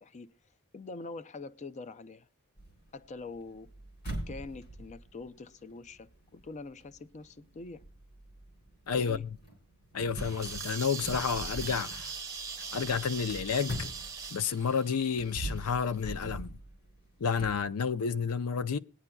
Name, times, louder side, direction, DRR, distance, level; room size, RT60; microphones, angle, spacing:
voice 1, 0.0-0.3 0.7-2.3 2.9-3.7 4.3-7.8 8.9-9.2, left 3 dB, 30° left, 0.4 m, -44 dB
sound 1, 2.6-14.6 15.0-17.6, right 1 dB, 55° left, 4.0 m, -43 dB
voice 2, 8.9-9.4 9.9-12.1 12.7-13.9 14.3-16.6 17.2-18.8, left 6 dB, 80° left, 0.5 m, -30 dB
sound 2, 10.1-15.9, right 5 dB, 15° right, 0.7 m, -41 dB
20.5 x 9.7 x 2.2 m
head